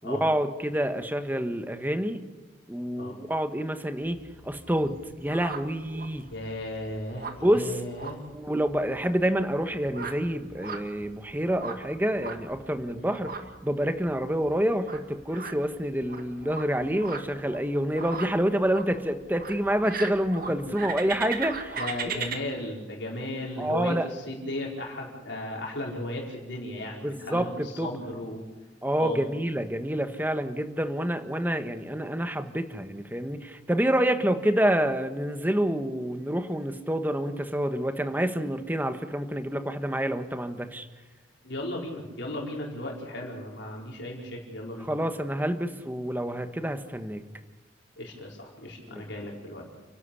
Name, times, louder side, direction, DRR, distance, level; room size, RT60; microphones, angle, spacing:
voice 1, 0.0-2.2 2.7-4.2 4.4-5.0 5.2-6.2 7.4-7.8 8.3-13.3 13.6-21.8 22.1-22.2 23.6-24.0 27.0-27.9 28.8-40.9 44.9-47.2 48.8-49.0, right 1 dB, 10° right, 8 dB, 1.4 m, -27 dB
sound 1, 4.0-22.4, right 5 dB, 50° right, 2.2 m, -39 dB
voice 2, 6.3-8.2 12.9-13.2 20.7-20.8 21.8-28.4 29.0-29.2 41.4-44.9 48.0-49.6, left 1 dB, 65° left, -1 dB, 4.8 m, -35 dB
30.0 x 12.0 x 8.4 m, 1.2 s
head